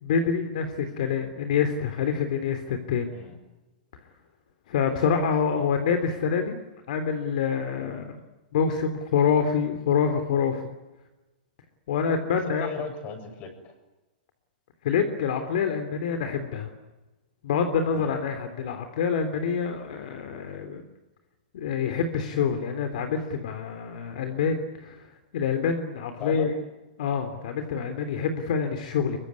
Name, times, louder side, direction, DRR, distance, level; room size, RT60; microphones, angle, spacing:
voice 1, 0.0-3.1 4.7-6.6 6.9-8.2 8.5-10.7 11.9-12.7 14.8-16.7 17.4-20.8 21.5-25.0 25.3-26.5 27.0-29.2, left 6 dB, 60° left, 7 dB, 3.4 m, -26 dB
voice 2, 3.1-3.4 4.8-5.1 12.3-13.7 17.9-18.2 26.2-26.5, left 6 dB, 30° left, 6 dB, 7.4 m, -38 dB
24.5 x 23.5 x 9.7 m, 1.1 s
hypercardioid pair, 155°, 5 cm